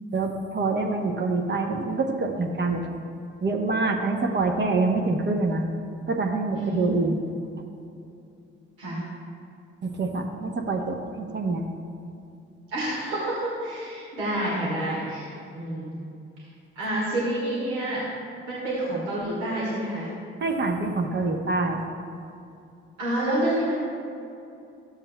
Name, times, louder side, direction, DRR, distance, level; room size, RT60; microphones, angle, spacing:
voice 1, 0.1-2.9 3.4-5.6 6.1-7.2 9.8-11.6 20.4-21.9, right 3 dB, 30° right, 2 dB, 0.9 m, -26 dB
voice 2, 6.6-7.1 8.8-9.0 12.7-16.0 16.8-18.0 18.5-20.1 23.0-23.8, right 1 dB, 70° right, -7 dB, 1.7 m, -28 dB
14.0 x 7.3 x 2.2 m, 2.6 s
figure-of-eight pair, 40°, 34 cm